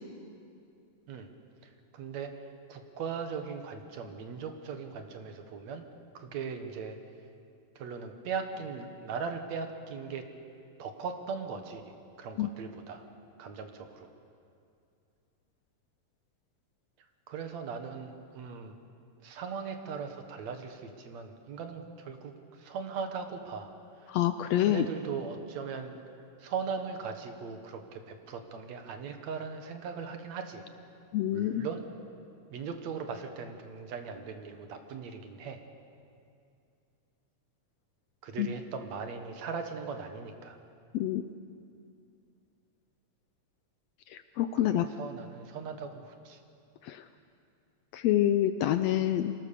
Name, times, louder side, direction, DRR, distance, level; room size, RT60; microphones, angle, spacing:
voice 1, 1.6-2.3 2.7-5.9 6.1-7.0 7.8-10.3 10.8-13.0 13.4-14.1 17.3-18.8 19.2-23.7 24.0-24.1 24.6-26.0 26.4-30.6 31.3-31.8 32.5-35.6 38.2-40.6 44.6-46.4, right 5 dB, 70° right, 6 dB, 2.5 m, -39 dB
voice 2, 24.1-24.9 31.1-31.7 38.4-38.5 40.9-41.2 44.1-44.9 46.8-47.0 47.9-49.3, left 12 dB, 75° left, 10 dB, 1.6 m, -27 dB
24.5 x 18.0 x 6.8 m, 2.5 s
omnidirectional pair, 3.4 m